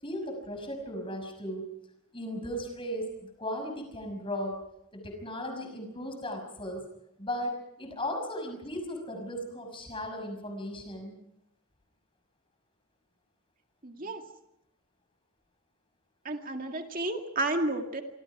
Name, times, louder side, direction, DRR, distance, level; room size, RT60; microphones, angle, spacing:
voice 1, 0.0-1.7 2.1-4.6 4.9-6.8 7.2-11.2, equal, 25° left, 4 dB, 6.0 m, -36 dB
voice 2, 13.8-14.2 16.3-18.0, right 2 dB, 40° right, 4 dB, 2.2 m, -31 dB
26.0 x 26.0 x 4.9 m, 0.81 s
head